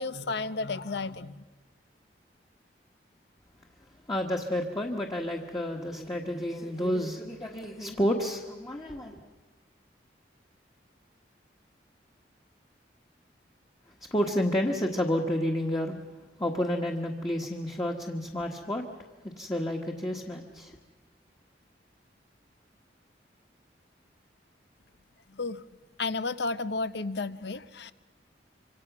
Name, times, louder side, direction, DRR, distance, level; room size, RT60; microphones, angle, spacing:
voice 1, 0.0-1.5 25.3-25.6 26.0-27.9, left 3 dB, 75° left, 13 dB, 0.9 m, -32 dB
voice 2, 4.1-9.3 14.1-16.0 16.4-18.8 19.2-20.8, equal, 20° left, 0 dB, 1.5 m, -30 dB
26.0 x 25.5 x 6.1 m, 1.2 s
head